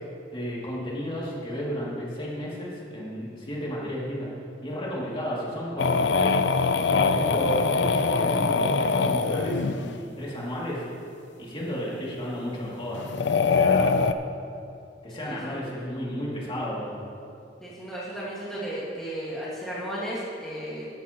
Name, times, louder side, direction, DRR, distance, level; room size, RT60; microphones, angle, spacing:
voice 1, 0.3-4.3 4.6-6.4 6.9-10.8 11.4-13.0 13.5-14.0 15.0-16.9, equal, 30° left, -6 dB, 2.5 m, -32 dB
sound 1, 5.8-9.9 12.9-14.1, left 4 dB, 90° left, 0.5 m, -23 dB
voice 2, 15.1-15.6 17.6-20.9, right 1 dB, 5° left, -9 dB, 1.8 m, -35 dB
13.5 x 12.0 x 3.0 m, 2.5 s
head